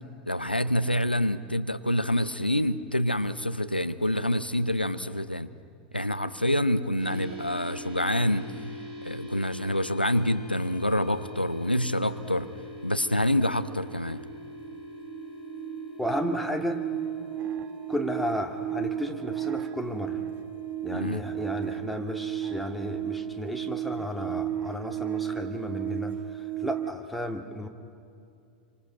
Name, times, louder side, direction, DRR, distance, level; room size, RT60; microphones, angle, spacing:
voice 1, 0.3-5.5 5.9-8.5 9.0-12.5 12.8-14.2 20.9-21.2, left 1 dB, 90° left, 13 dB, 0.7 m, -27 dB
sound 1, 7.0-26.7, equal, 85° right, 7.4 m, -44 dB
sound 2, 13.3-13.4 13.7-26.9, right 11 dB, 35° right, 0.8 m, -34 dB
voice 2, 16.0-16.8 17.9-20.2 20.8-27.7, left 1 dB, ahead, 3 dB, 2.2 m, -33 dB
28.5 x 25.5 x 6.1 m, 2.5 s
figure-of-eight pair, 90°, 5 cm